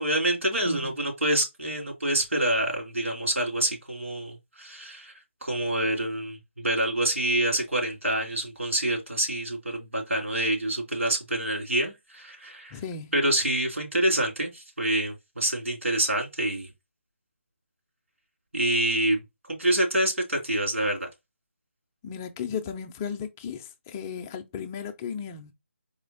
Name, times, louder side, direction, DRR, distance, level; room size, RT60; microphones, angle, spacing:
voice 1, 0.0-5.1 5.4-12.8 13.1-16.7 18.5-19.2 19.4-21.1, right 1 dB, 85° right, 2.9 m, -27 dB
voice 2, 0.6-1.0 12.7-13.1 22.0-25.5, left 6 dB, 15° left, 0.4 m, -35 dB
4.3 x 3.1 x 3.9 m
figure-of-eight pair, 160°, 7 cm